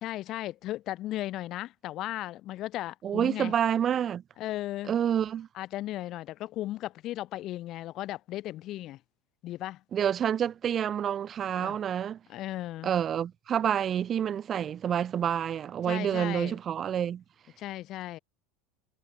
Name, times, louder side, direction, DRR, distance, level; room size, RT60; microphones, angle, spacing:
voice 1, 0.0-3.5 4.4-4.9 5.5-9.0 9.4-9.8 11.6-11.8 12.3-12.9 15.9-16.5 17.6-18.2, left 15 dB, 50° left, 3.7 m, -36 dB
voice 2, 3.0-4.2 4.9-5.5 9.9-12.2 12.8-17.2, right 9 dB, 35° right, 1.0 m, -28 dB
supercardioid pair, 105°, 0 cm